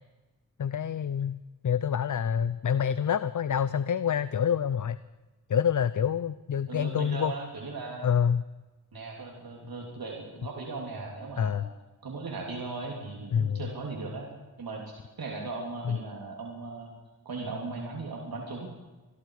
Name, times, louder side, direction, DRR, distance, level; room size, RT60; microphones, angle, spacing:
voice 1, 0.6-5.0 5.5-7.3 8.0-8.4 11.4-11.7 13.3-13.6 15.8-16.0, left 8 dB, 50° left, 15 dB, 0.6 m, -27 dB
voice 2, 6.7-8.1 8.9-11.7 12.0-14.3 14.6-16.9 17.2-18.7, right 3 dB, 65° right, -1 dB, 3.3 m, -38 dB
26.0 x 21.5 x 4.9 m, 1.2 s
wide cardioid pair, 135°, 38 cm